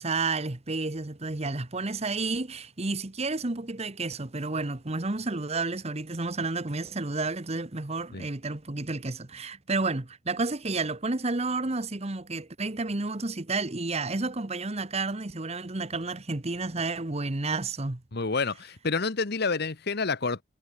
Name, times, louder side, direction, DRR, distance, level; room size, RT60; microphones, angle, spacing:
voice 1, 0.0-18.0, right 3 dB, 35° right, 1.2 m, -31 dB
voice 2, 18.1-20.4, left 4 dB, 55° left, 1.1 m, -28 dB
head